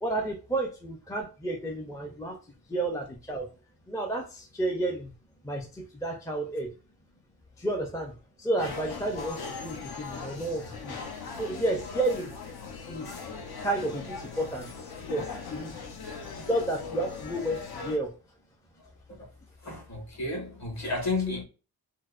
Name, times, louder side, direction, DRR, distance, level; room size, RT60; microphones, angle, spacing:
voice 1, 0.0-2.4 2.7-3.5 3.9-5.1 5.4-6.7 7.6-11.0 11.3-12.3 12.9-13.2 13.6-15.8 16.4-18.1, right 2 dB, 10° left, 0.4 m, -31 dB
sound 1, 8.6-18.0, left 5 dB, 65° left, 0.8 m, -39 dB
voice 2, 19.6-21.4, left 3 dB, 45° left, 1.4 m, -32 dB
4.6 x 2.1 x 2.4 m
wide cardioid pair, 145°, 40 cm